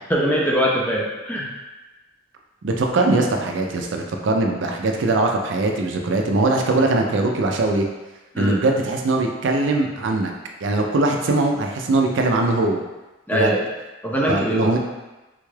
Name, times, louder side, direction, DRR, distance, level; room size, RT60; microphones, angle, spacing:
voice 1, 0.1-1.5 8.3-8.6 13.3-13.6 14.0-14.8, equal, 10° left, -3 dB, 0.4 m, -22 dB
voice 2, 2.6-7.8 8.4-10.3 10.6-12.8 13.3-13.6 14.3-14.8, right 2 dB, 70° right, 2 dB, 0.4 m, -21 dB
3.7 x 2.3 x 3.2 m, 1.1 s
head